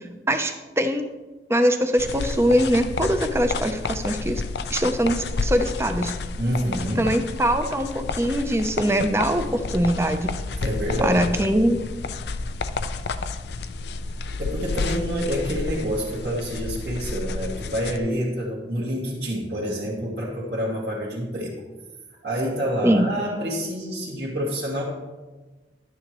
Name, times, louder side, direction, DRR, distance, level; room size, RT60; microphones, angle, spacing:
voice 1, 0.3-1.0 1.5-4.4 4.7-6.1 7.0-10.3 11.0-11.8 22.8-23.1, equal, 15° right, 7 dB, 0.6 m, -22 dB
sound 1, 2.0-18.0, left 3 dB, 70° left, 0.4 m, -30 dB
voice 2, 6.4-7.1 10.6-11.2 14.4-21.5 22.2-24.8, equal, 70° right, -7 dB, 2.1 m, -27 dB
11.5 x 9.4 x 3.1 m, 1.2 s
head